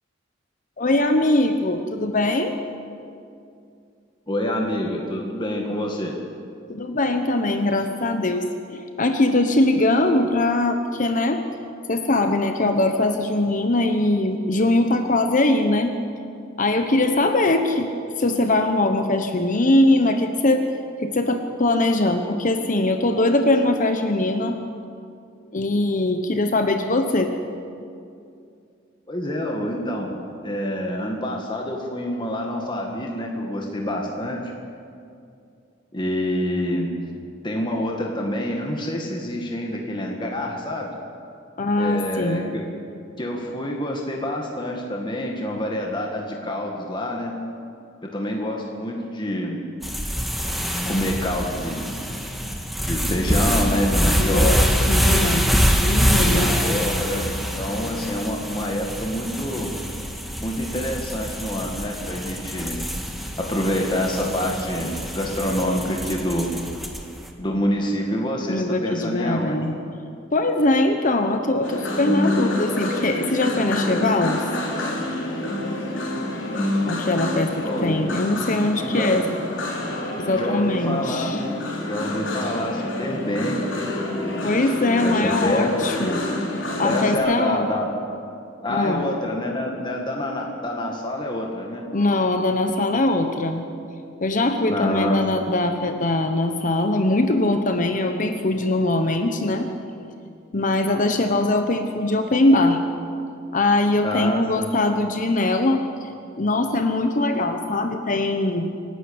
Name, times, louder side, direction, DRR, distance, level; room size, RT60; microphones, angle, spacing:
voice 1, 0.8-2.5 6.7-11.4 11.9-16.0 16.6-17.9 18.2-20.6 21.0-24.6 25.5-27.3 41.6-42.4 54.2-54.6 54.9-56.8 68.5-69.8 70.3-74.4 76.9-79.3 80.2-81.4 84.4-86.3 86.8-87.7 88.7-89.0 91.9-93.6 94.2-99.7 100.5-102.8 103.5-106.1 106.4-108.7, left 2 dB, 45° left, 6 dB, 1.1 m, -21 dB
voice 2, 4.3-6.2 29.1-34.5 35.9-36.9 37.4-40.9 41.8-42.7 43.2-47.3 48.0-49.6 50.7-51.9 52.8-55.0 56.1-57.3 57.6-59.7 60.4-62.8 63.4-66.5 67.4-69.6 77.6-78.1 78.8-79.2 80.3-81.3 81.8-83.6 84.1-84.5 85.0-85.7 86.8-87.9 88.6-91.8 94.6-95.2 104.0-104.7, left 1 dB, 25° left, 0 dB, 1.9 m, -27 dB
sound 1, 49.8-67.2, equal, ahead, 1.8 m, -25 dB
sound 2, 71.6-87.2, left 1 dB, 75° left, 4.0 m, -27 dB
26.5 x 12.0 x 8.7 m, 2.5 s
head